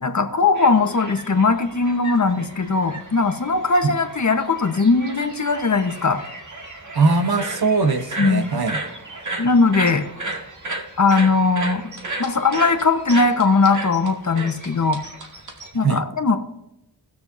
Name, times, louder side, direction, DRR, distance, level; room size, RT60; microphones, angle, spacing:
voice 1, 0.0-6.2 8.2-8.5 9.4-10.0 11.0-11.9 12.2-15.0 15.7-16.4, left 4 dB, 45° left, 6 dB, 1.1 m, -19 dB
sound 1, 0.5-15.7, right 2 dB, 45° right, 2.0 m, -34 dB
voice 2, 6.9-8.8 15.8-16.0, right 4 dB, 60° right, 9 dB, 1.0 m, -20 dB
19.5 x 6.8 x 2.6 m, 0.86 s
wide cardioid pair, 80°, 41 cm